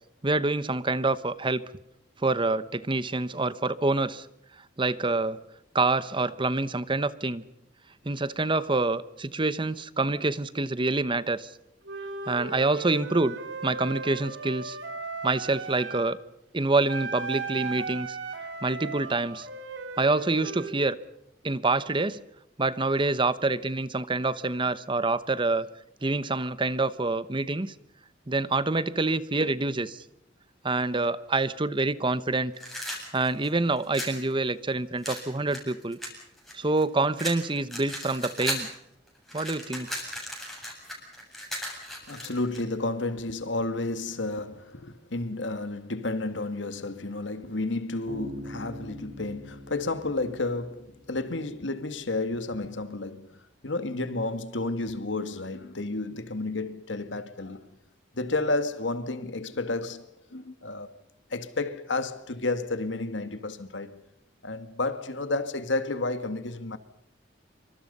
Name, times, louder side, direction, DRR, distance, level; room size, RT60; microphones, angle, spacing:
voice 1, 0.2-1.6 2.2-4.3 4.8-5.4 5.7-7.4 8.0-11.5 12.3-13.3 13.6-14.8 15.2-16.2 16.5-18.2 18.6-19.5 20.0-21.0 21.4-22.2 22.6-25.7 26.0-27.7 28.3-30.0 30.6-32.5 33.1-36.0 36.5-38.7 39.3-39.9, right 3 dB, 25° right, 0.9 m, -26 dB
Wind instrument woodwind instrument, 11.8-16.1 16.9-20.8, right 4 dB, 75° right, 3.6 m, -37 dB
sound 1, 32.5-34.2 35.0-36.8 37.2-38.8 39.1-42.6, equal, ahead, 7.7 m, -36 dB
voice 2, 42.1-57.8 58.1-60.9 61.3-64.0 64.4-66.8, left 2 dB, 75° left, 1.9 m, -31 dB
Bass guitar, 48.1-51.6, equal, 55° right, 3.5 m, -43 dB
27.5 x 25.0 x 5.5 m
head